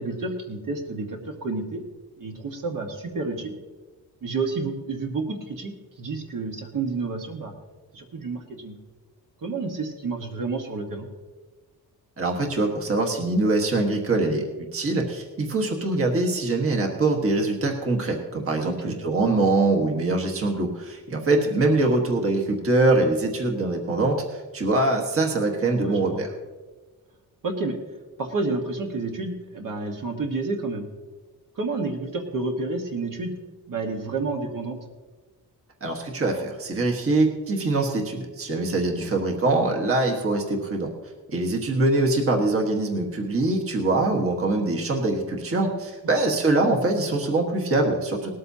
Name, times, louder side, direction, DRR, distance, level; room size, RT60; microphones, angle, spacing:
voice 1, 0.0-1.8 2.2-3.5 4.2-7.5 7.9-8.8 9.4-11.1 18.6-19.0 25.8-26.2 27.4-27.8 28.2-30.9 31.5-33.3 33.7-34.8 39.0-39.1 46.1-46.2, right 3 dB, 60° right, 2 dB, 1.5 m, -30 dB
voice 2, 12.2-14.4 14.7-26.3 35.8-40.9 41.3-48.3, right 2 dB, 35° right, 1 dB, 1.4 m, -23 dB
19.0 x 13.0 x 2.8 m, 1.3 s
wide cardioid pair, 175°, 37 cm